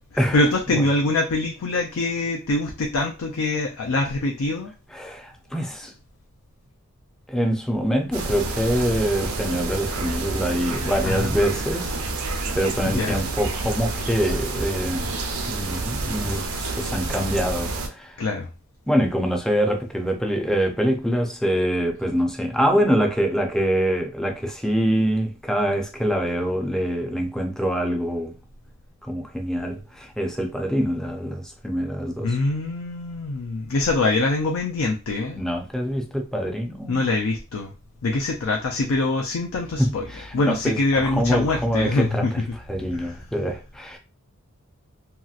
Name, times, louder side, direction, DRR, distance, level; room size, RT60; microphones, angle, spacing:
voice 1, 0.3-4.7 11.0-11.4 12.8-13.3 18.2-18.5 32.2-35.4 36.9-37.7 38.0-40.1 40.3-42.3 42.9-43.2, left 2 dB, 75° left, 0.5 m, -24 dB
voice 2, 4.9-5.9 7.3-11.9 12.5-15.1 15.5-18.2 18.9-28.4 29.0-32.4 35.3-37.0 39.8-42.3 42.7-44.0, equal, 5° left, 0.5 m, -25 dB
sound 1, 8.1-17.9, right 3 dB, 85° right, 0.6 m, -29 dB
2.9 x 2.8 x 2.4 m
head